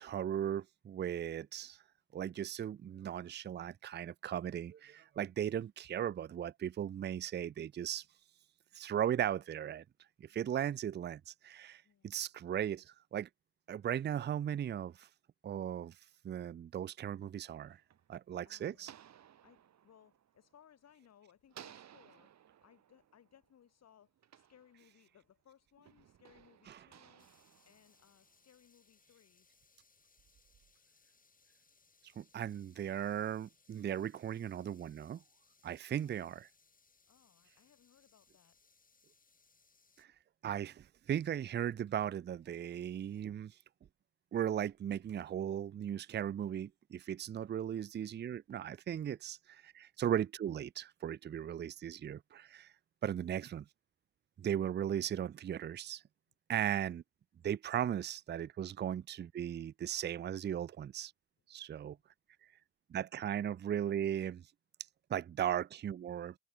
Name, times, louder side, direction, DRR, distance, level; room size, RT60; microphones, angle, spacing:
voice 1, 0.0-1.8 2.1-8.0 8.7-9.8 10.2-13.3 13.7-15.1 15.4-15.9 16.2-17.8 18.1-18.9 26.7-26.8 32.2-35.2 35.6-36.5 40.0-40.1 40.4-43.5 44.3-52.7 53.0-53.6 54.4-56.0 56.5-57.0 57.4-61.1 61.5-62.0 62.9-64.4 65.1-66.3, right 10 dB, 35° right, 0.5 m, -37 dB
voice 2, 11.8-12.2 18.4-19.0 19.4-27.3 27.7-29.5 36.0-36.4 37.1-38.6 53.0-53.3, left 9 dB, 60° left, 4.1 m, -65 dB
sound 1, 17.3-21.0 21.5-25.3 25.9-28.5, right 10 dB, 65° right, 4.3 m, -60 dB
sound 2, 27.2-40.1, left 4 dB, 30° left, 4.2 m, -70 dB
cardioid pair, 90°, 30 cm